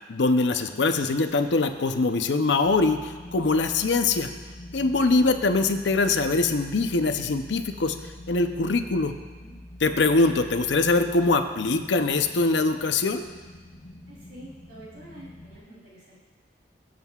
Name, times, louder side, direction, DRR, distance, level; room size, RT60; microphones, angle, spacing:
voice 1, 0.0-4.3 4.7-8.0 8.3-9.1 9.8-13.3, left 3 dB, 85° left, 8 dB, 0.7 m, -23 dB
sound 1, 0.6-15.6, left 1 dB, 55° left, 1.4 m, -45 dB
voice 2, 9.0-9.5 14.1-16.2, right 1 dB, 65° right, -5 dB, 3.5 m, -47 dB
22.0 x 7.6 x 2.4 m, 1.4 s
head